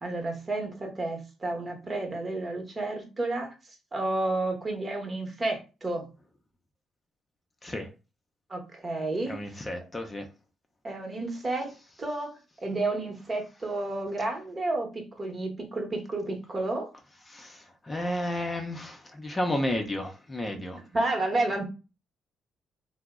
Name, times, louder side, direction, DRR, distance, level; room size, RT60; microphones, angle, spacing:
voice 1, 0.0-3.5 3.9-6.1 8.5-9.3 10.8-11.7 12.0-16.9 20.5-21.6, right 2 dB, 30° right, 0.9 m, -31 dB
voice 2, 9.3-10.2 17.3-20.8, left 1 dB, 25° left, 0.6 m, -32 dB
2.8 x 2.0 x 3.5 m
cardioid pair, 90°, 0 cm